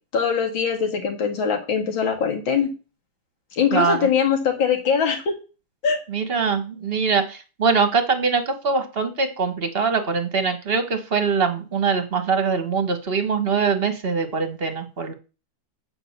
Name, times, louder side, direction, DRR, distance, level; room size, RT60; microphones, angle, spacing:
voice 1, 0.1-2.7 3.5-5.3 5.8-6.0, left 6 dB, 80° left, 3 dB, 2.7 m, -22 dB
voice 2, 3.7-4.1 6.1-15.1, right 5 dB, 35° right, 8 dB, 1.4 m, -23 dB
8.9 x 4.8 x 6.6 m, 0.32 s
omnidirectional pair, 2.1 m